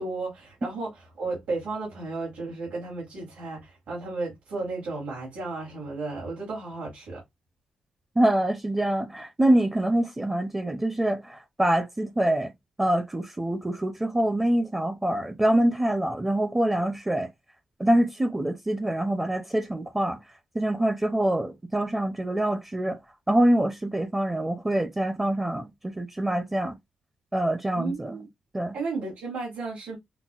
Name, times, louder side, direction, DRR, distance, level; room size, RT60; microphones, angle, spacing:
voice 1, 0.0-7.2 27.7-28.3 28.7-30.0, right 3 dB, 80° right, 2.1 m, -34 dB
voice 2, 8.2-12.5 12.8-17.3 17.8-20.2 20.5-23.0 23.3-26.8 27.3-28.3 28.5-28.8, right 1 dB, 15° right, 0.5 m, -25 dB
5.7 x 2.1 x 2.3 m
cardioid pair, 100°, 2 cm